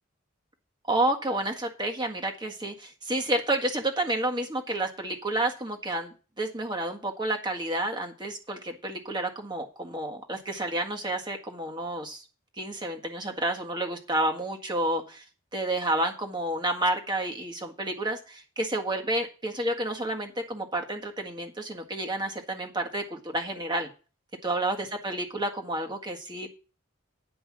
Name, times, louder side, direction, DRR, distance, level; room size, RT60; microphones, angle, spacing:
voice 1, 0.9-12.2 12.6-15.2 15.5-23.9 24.4-26.6, right 1 dB, 20° right, 3 dB, 1.7 m, -30 dB
10.5 x 5.4 x 7.4 m, 0.35 s
head